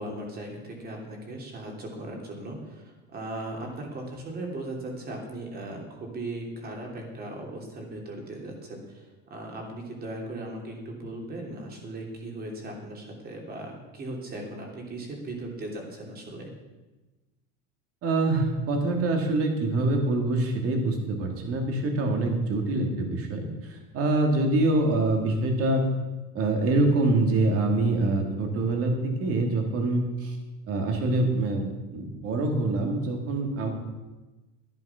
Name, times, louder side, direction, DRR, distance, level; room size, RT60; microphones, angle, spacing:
voice 1, 0.0-9.0 9.3-16.5, right 1 dB, 30° right, 1 dB, 2.9 m, -38 dB
voice 2, 18.0-23.5 23.9-25.8 26.3-30.3 30.7-33.7, right 2 dB, 45° right, 3 dB, 2.5 m, -25 dB
11.0 x 11.0 x 5.8 m, 1.1 s
cardioid pair, 150°, 33 cm